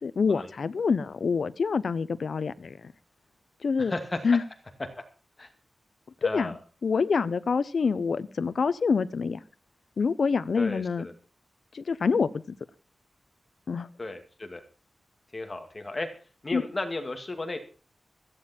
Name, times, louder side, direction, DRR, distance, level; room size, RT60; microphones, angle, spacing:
voice 1, 0.0-2.9 3.6-3.9 4.2-4.4 6.2-9.4 10.0-11.1 11.7-12.4 13.7-13.9 16.5-16.6, left 5 dB, 65° left, 14 dB, 0.8 m, -26 dB
voice 2, 3.8-4.2 5.4-5.5 6.2-6.6 10.6-11.1 14.0-14.6 15.3-16.1 16.4-17.6, left 2 dB, 30° left, 6 dB, 2.4 m, -34 dB
17.0 x 14.5 x 4.5 m, 0.37 s
wide cardioid pair, 150°, 0 cm